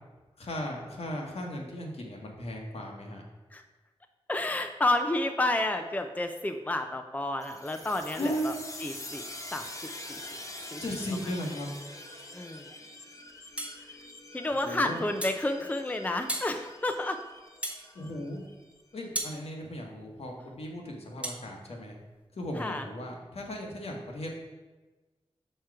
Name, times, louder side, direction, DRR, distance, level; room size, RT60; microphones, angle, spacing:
voice 1, 0.4-3.2 8.2-8.6 10.8-11.7 14.6-15.0 17.9-18.4 18.9-21.9 22.3-24.3, equal, 75° left, 0 dB, 1.3 m, -36 dB
voice 2, 4.3-8.5 8.8-9.2 9.5-9.7 10.1-10.2 10.7-10.8 12.3-12.7 14.3-17.2 22.6-22.9, left 2 dB, 15° left, 6 dB, 0.5 m, -30 dB
sound 1, 7.4-18.8, left 1 dB, 30° left, 1.1 m, -45 dB
sound 2, 13.6-13.8 15.2-15.4 16.3-16.5 17.6-17.8 19.1-19.4 21.2-21.4, right 1 dB, 10° right, 1.0 m, -34 dB
6.3 x 4.5 x 4.7 m, 1.2 s
wide cardioid pair, 60°, 10 cm